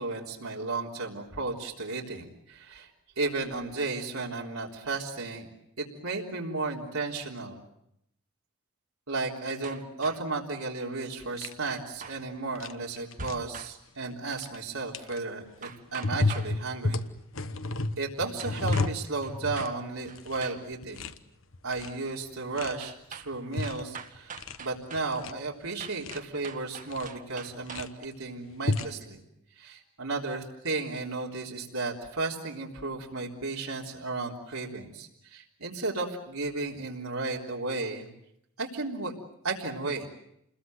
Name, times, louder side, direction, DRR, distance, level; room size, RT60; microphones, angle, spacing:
voice 1, 0.0-2.9 3.2-5.5 5.8-7.6 9.1-17.0 18.0-21.1 21.6-24.3 24.6-29.2 29.6-38.1 38.6-39.1 39.4-40.1, right 3 dB, 85° right, -2 dB, 3.7 m, -34 dB
sound 1, 9.6-10.4 11.7-12.2 13.2-13.7 15.6-16.5 18.4-18.9 19.2-19.8 20.1-20.6 22.8-23.3 23.6-25.1 25.8-28.1, right 6 dB, 35° right, 1.5 m, -44 dB
sound 2, 11.4-11.5 12.5-12.7 13.0-13.3 14.3-14.6 14.9-15.2 16.0-19.7 20.1-20.4 20.7-21.2 21.5-22.0 22.6-22.7 23.3-23.8 24.1-24.6 25.0-25.3 25.8-26.2 26.9-27.1 27.5-27.9 28.5-28.9, left 2 dB, 65° left, 1.1 m, -31 dB
29.0 x 21.5 x 7.9 m, 0.77 s
head